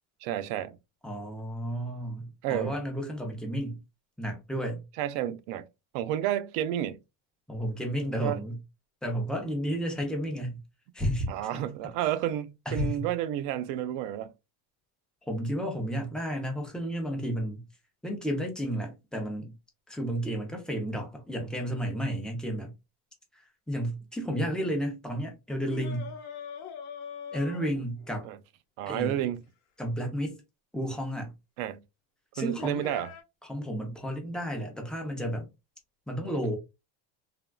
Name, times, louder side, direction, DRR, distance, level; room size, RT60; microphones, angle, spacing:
voice 1, 0.2-0.8 2.4-2.8 5.0-5.7 5.9-7.0 8.2-8.4 11.3-14.3 28.2-28.4 28.8-29.4 31.6-31.8 32.4-33.1, right 11 dB, 80° right, 0.5 m, -31 dB
voice 2, 1.0-3.8 4.2-4.8 7.5-8.6 9.0-10.6 10.9-11.3 11.5-11.6 12.7-13.1 15.2-17.6 18.0-19.5 19.9-22.7 23.3-26.1 27.3-28.3 28.9-29.2 29.8-30.4 30.7-31.3 32.3-32.8 33.4-35.5 36.1-36.6, equal, ahead, 0.6 m, -32 dB
sound 1, 25.7-28.2 30.8-30.9 32.6-33.2, left 7 dB, 40° left, 0.8 m, -42 dB
3.5 x 2.2 x 2.2 m
cardioid pair, 150°, 41 cm